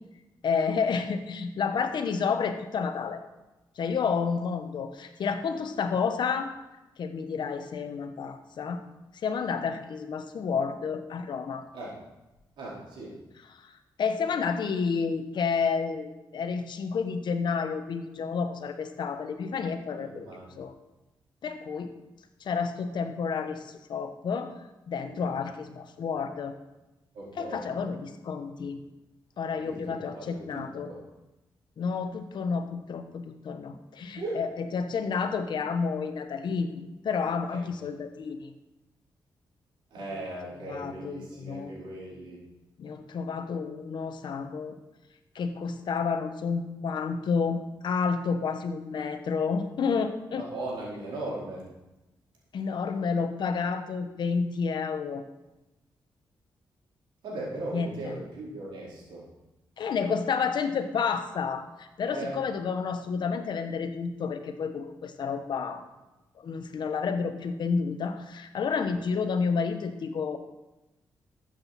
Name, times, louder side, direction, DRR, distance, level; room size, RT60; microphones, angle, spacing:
voice 1, 0.4-3.2 3.8-6.5 7.0-8.8 9.2-11.7 13.5-20.3 20.6-20.7 21.4-21.9 22.4-24.5 24.9-26.5 27.4-28.8 29.4-30.9 31.8-34.5 34.7-38.5 40.7-41.7 42.8-44.8 45.3-50.4 52.5-55.2 57.7-58.1 59.8-65.8 66.4-70.4, left 5 dB, 70° left, 8 dB, 1.1 m, -30 dB
voice 2, 12.6-13.2 20.0-20.5 25.0-25.3 27.1-27.7 29.6-31.0 34.2-34.5 37.5-37.6 39.9-42.4 50.4-51.7 57.2-59.3 62.1-62.4, right 2 dB, 90° right, -6 dB, 4.3 m, -38 dB
13.5 x 7.8 x 4.2 m, 1.0 s
cardioid pair, 70°, 8 cm